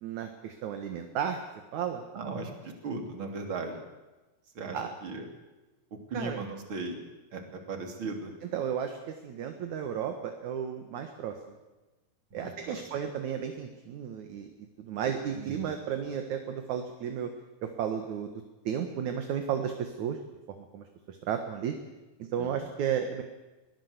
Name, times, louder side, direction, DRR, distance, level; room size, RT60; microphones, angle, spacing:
voice 1, 0.0-1.4 1.7-2.0 4.7-4.9 6.1-6.4 8.5-9.0 9.2-11.4 12.3-14.5 14.8-17.3 17.6-20.2 20.5-21.7 22.3-23.2, right 8 dB, 60° right, 6 dB, 2.4 m, -33 dB
voice 2, 2.1-3.8 4.6-5.3 6.1-7.0 7.3-8.3 12.3-12.8 15.4-15.8 22.4-22.5, right 3 dB, 35° right, 4 dB, 3.5 m, -37 dB
22.5 x 17.5 x 8.1 m, 1.1 s
omnidirectional pair, 4.4 m